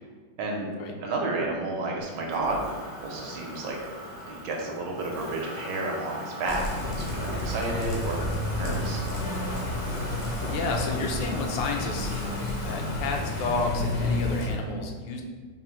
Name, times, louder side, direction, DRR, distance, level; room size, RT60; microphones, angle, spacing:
voice 1, 0.4-0.7 1.0-2.7 3.0-3.8 4.3-9.0, right 2 dB, 75° right, -1 dB, 1.2 m, -31 dB
Motor vehicle (road), 2.0-14.5, equal, 55° right, 0.9 m, -40 dB
sound 1, 6.4-14.5, left 2 dB, 65° left, 0.8 m, -30 dB
voice 2, 10.5-12.2 12.6-15.2, left 3 dB, 80° left, 2 dB, 1.3 m, -31 dB
3.8 x 2.0 x 4.3 m, 1.5 s
omnidirectional pair, 2.1 m